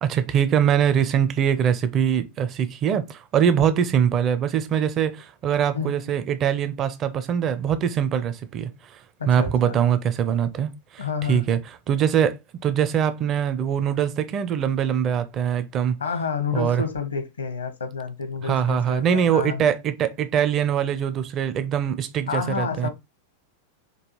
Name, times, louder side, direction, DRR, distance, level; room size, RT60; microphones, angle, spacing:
voice 1, 0.0-11.6 11.9-16.0 16.5-16.8 18.4-22.9, right 8 dB, 30° right, 0.5 m, -23 dB
voice 2, 5.7-6.1 9.2-9.8 11.0-11.4 16.0-19.6 22.3-22.9, left 5 dB, 75° left, 0.8 m, -29 dB
5.3 x 2.3 x 3.1 m
figure-of-eight pair, 90°, 0 cm